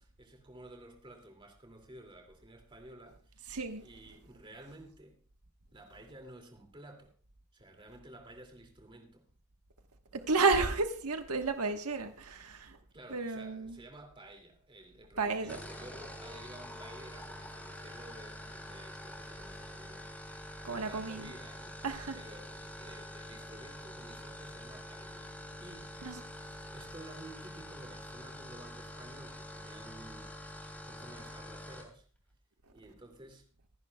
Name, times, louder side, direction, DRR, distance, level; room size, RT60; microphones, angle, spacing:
voice 1, 0.0-3.5 3.8-5.2 5.7-7.1 7.5-9.3 12.9-20.4 20.7-21.8 22.1-26.2 26.6-32.1 32.7-33.4, right 1 dB, 20° right, 2.6 m, -53 dB
voice 2, 3.5-3.9 10.1-12.8 13.1-13.8 15.2-15.6 20.6-21.3 21.8-22.2 26.0-26.2, right 4 dB, 90° right, 1.4 m, -32 dB
sound 1, 15.5-31.9, left 1 dB, 5° left, 2.8 m, -46 dB
25.5 x 11.0 x 2.3 m
head